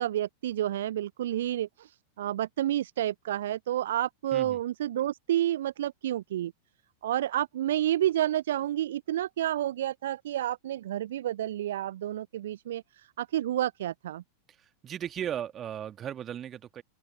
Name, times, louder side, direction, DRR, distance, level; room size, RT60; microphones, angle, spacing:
voice 1, 0.0-6.5 7.0-14.2, right 12 dB, 60° right, 0.5 m, -30 dB
voice 2, 14.5-16.8, right 10 dB, 25° right, 2.3 m, -37 dB
open air
figure-of-eight pair, 90°, 0 cm